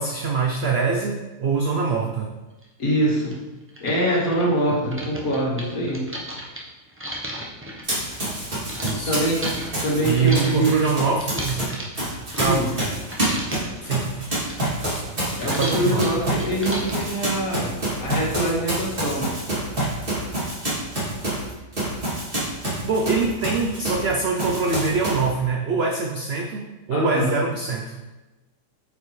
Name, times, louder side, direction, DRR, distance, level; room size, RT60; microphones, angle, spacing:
voice 1, 0.0-2.3 4.8-5.0 8.8-9.2 10.0-11.6 12.4-12.7 13.8-14.1 15.6-16.1 22.8-28.0, right 4 dB, 80° right, 1 dB, 0.5 m, -24 dB
sound 1, 2.6-2.7 3.3-3.4 3.7-8.9 9.4-12.8 13.1-13.8 14.2-17.2, right 1 dB, 15° right, 0.5 m, -35 dB
voice 2, 2.8-3.4 3.8-6.1 9.0-9.4 9.8-10.8 12.4-12.7 15.4-19.3 26.9-27.3, right 1 dB, 55° left, -4 dB, 2.1 m, -24 dB
Run, 7.8-11.6 12.0-24.1 24.4-25.3, right 1 dB, 30° right, 2.8 m, -27 dB
8.3 x 5.2 x 3.2 m, 1.1 s
omnidirectional pair, 1.8 m